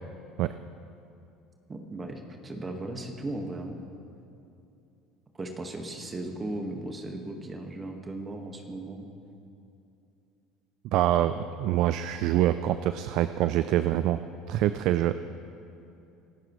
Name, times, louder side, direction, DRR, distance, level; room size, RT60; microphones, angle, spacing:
voice 1, 1.7-3.8 5.3-9.1, right 2 dB, 25° right, 3 dB, 1.7 m, -37 dB
voice 2, 10.9-14.2 14.5-15.1, right 13 dB, 60° right, 12 dB, 0.4 m, -25 dB
24.5 x 13.5 x 3.2 m, 2.7 s
hypercardioid pair, 75°, 0 cm